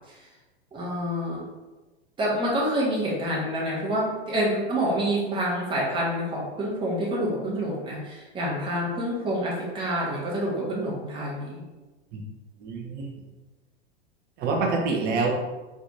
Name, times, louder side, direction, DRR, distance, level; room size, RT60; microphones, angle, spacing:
voice 1, 0.7-1.4 2.2-11.6 15.1-15.2, equal, 15° right, -4 dB, 1.1 m, -27 dB
voice 2, 12.6-13.1 14.4-15.3, right 4 dB, 30° right, 1 dB, 0.8 m, -26 dB
4.0 x 3.5 x 2.9 m, 1.2 s
figure-of-eight pair, 95°, 32 cm